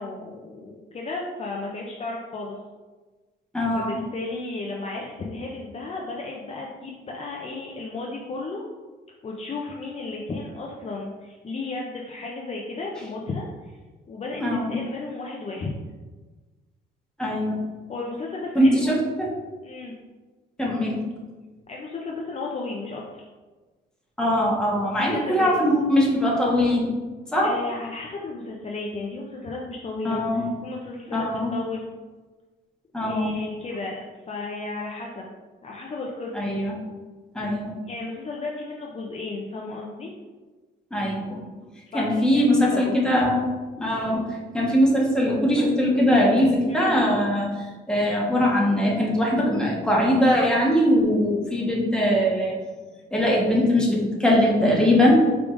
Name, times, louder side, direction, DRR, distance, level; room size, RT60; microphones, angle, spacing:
voice 1, 0.0-2.6 3.7-8.7 9.2-13.7 14.1-15.7 17.9-18.9 19.6-19.9 21.7-23.2 25.0-25.5 27.4-31.8 33.0-35.3 35.6-36.5 37.8-40.1 41.9-43.0 46.7-47.0, left 3 dB, 35° left, -2 dB, 0.6 m, -34 dB
voice 2, 3.5-4.0 14.4-14.8 17.2-17.6 18.5-19.3 20.6-21.0 24.2-26.9 27.3-27.5 30.0-30.4 31.1-31.5 32.9-33.4 36.3-36.8 37.3-37.8 40.9-41.4 41.9-43.4 43.8-52.5 53.1-55.3, equal, 5° left, -4 dB, 1.2 m, -21 dB
4.7 x 3.5 x 2.5 m, 1.3 s
cardioid pair, 90°, 20 cm